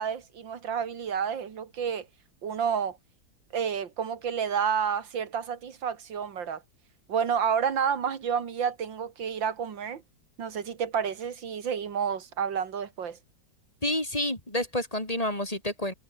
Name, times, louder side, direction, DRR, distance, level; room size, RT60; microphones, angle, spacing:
voice 1, 0.0-2.1 2.4-3.0 3.5-6.6 7.1-10.0 10.4-13.2, right 7 dB, 85° right, 2.5 m, -30 dB
voice 2, 13.8-15.9, left 1 dB, 20° left, 4.0 m, -29 dB
omnidirectional pair, 2.0 m